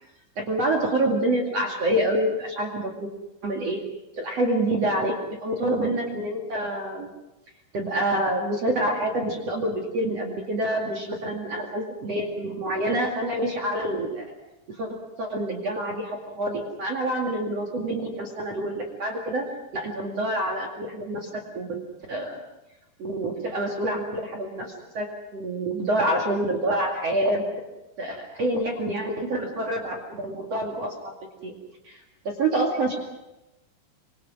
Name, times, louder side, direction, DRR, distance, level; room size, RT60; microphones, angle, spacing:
voice 1, 0.4-3.1 3.4-3.8 4.2-7.1 7.7-14.3 14.7-19.4 19.7-21.8 22.1-22.4 23.0-25.1 25.3-27.4 28.0-31.1 31.4-31.5 31.8-33.0, right 1 dB, 45° right, 1 dB, 2.9 m, -27 dB
26.0 x 25.5 x 6.3 m, 0.99 s
omnidirectional pair, 4.9 m